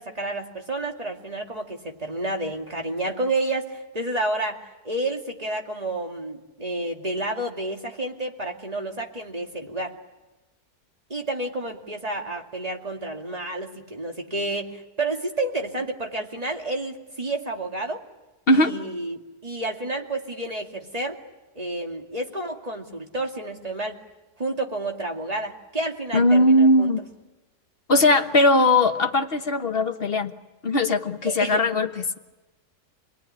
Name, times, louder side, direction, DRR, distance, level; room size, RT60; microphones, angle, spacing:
voice 1, 0.0-10.0 11.1-18.0 18.5-21.2 21.6-24.0 24.4-26.9 31.2-31.6, right 2 dB, 25° right, 2 dB, 2.4 m, -30 dB
voice 2, 26.1-27.0 27.9-30.3 30.6-32.2, left 1 dB, 40° left, 7 dB, 1.3 m, -19 dB
28.0 x 20.5 x 9.9 m, 1.1 s
omnidirectional pair, 1.7 m